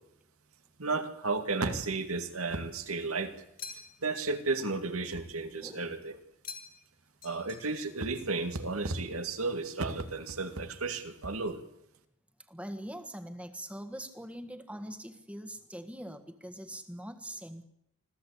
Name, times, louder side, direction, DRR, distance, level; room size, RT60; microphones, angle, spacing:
voice 1, 0.8-3.3 4.0-6.2 7.2-11.6, right 3 dB, 85° right, 8 dB, 2.3 m, -33 dB
sound 1, 3.6-4.2 6.4-6.9 7.2-8.0, left 6 dB, 40° left, 2.1 m, -46 dB
voice 2, 5.6-6.0 12.5-17.7, right 1 dB, 5° right, 9 dB, 1.5 m, -43 dB
25.5 x 15.5 x 8.4 m, 0.81 s
head